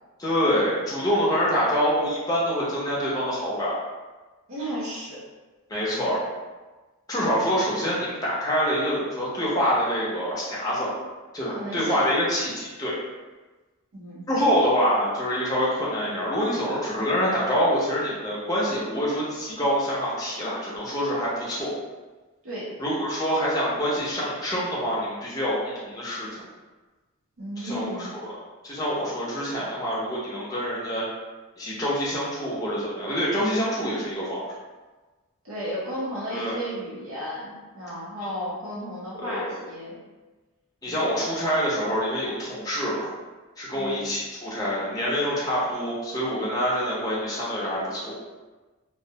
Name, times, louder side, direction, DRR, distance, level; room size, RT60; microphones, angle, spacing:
voice 1, 0.2-3.8 5.7-6.2 7.1-10.9 11.3-12.9 14.3-21.7 22.8-26.4 27.6-28.3 28.6-31.1 31.6-34.5 36.3-36.6 39.2-39.5 40.8-43.1 43.6-48.1, equal, 15° left, -7 dB, 0.5 m, -26 dB
voice 2, 4.5-5.2 11.5-12.0 13.9-14.3 22.4-22.7 27.4-28.1 35.4-40.0 40.9-41.1 43.7-44.0, equal, 70° right, -7 dB, 0.7 m, -33 dB
2.3 x 2.1 x 2.7 m, 1.2 s
head